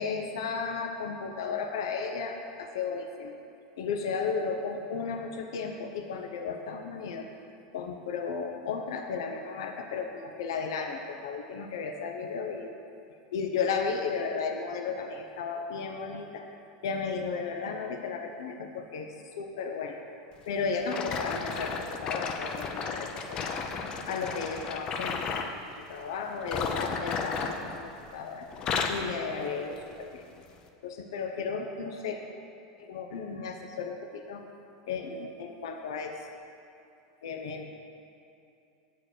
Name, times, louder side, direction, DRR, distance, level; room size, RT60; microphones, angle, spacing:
voice 1, 0.0-3.4 3.8-7.3 7.7-12.7 13.3-16.4 16.8-19.1 19.4-20.0 20.5-23.6 24.1-25.3 25.6-28.5 28.9-30.2 30.8-32.2 32.8-34.5 34.9-36.2 37.2-37.7, left 5 dB, 85° left, 4 dB, 0.7 m, -34 dB
sound 1, 20.9-25.6 26.4-28.2 28.5-29.1 29.7-29.9 30.6-30.7, left 5 dB, 35° left, 0.6 m, -33 dB
7.5 x 4.6 x 6.3 m, 2.7 s
supercardioid pair, 125°, 2 cm